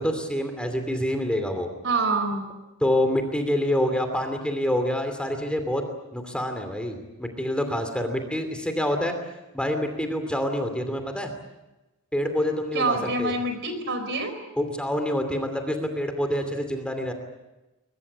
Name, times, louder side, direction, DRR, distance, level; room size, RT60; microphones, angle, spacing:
voice 1, 0.0-1.7 2.8-5.8 6.1-9.1 9.5-11.3 12.1-13.3 14.6-17.1, left 1 dB, 5° left, 6 dB, 2.7 m, -26 dB
voice 2, 1.8-2.5 12.7-14.3, right 3 dB, 55° right, 8 dB, 4.2 m, -26 dB
22.5 x 22.5 x 8.4 m, 1.0 s
head